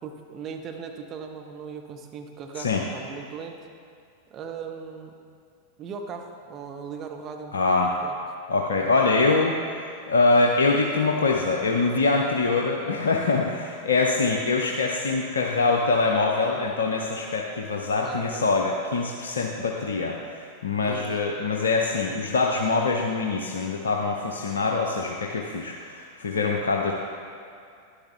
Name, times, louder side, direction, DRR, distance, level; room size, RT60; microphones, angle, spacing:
voice 1, 0.0-3.6 4.3-5.1 5.8-8.2 18.0-18.5 20.8-21.1, right 5 dB, 30° right, 3 dB, 1.0 m, -38 dB
voice 2, 7.5-7.9 8.5-9.6 10.1-26.9, left 3 dB, 70° left, 0 dB, 0.7 m, -24 dB
11.5 x 10.5 x 3.4 m, 2.3 s
figure-of-eight pair, 90°, 0 cm